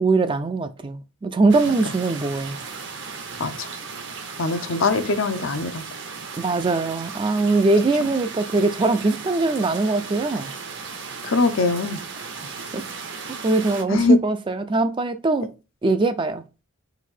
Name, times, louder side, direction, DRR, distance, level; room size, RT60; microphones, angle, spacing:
voice 1, 0.0-2.6 6.4-10.5 12.7-12.8 13.4-15.5 15.8-16.4, right 3 dB, 25° right, 0.3 m, -21 dB
sound 1, 1.5-13.8, right 5 dB, 55° right, 0.8 m, -36 dB
voice 2, 4.4-5.8 11.2-12.0 13.9-14.2, left 3 dB, 70° left, 0.6 m, -21 dB
4.0 x 2.6 x 4.3 m
head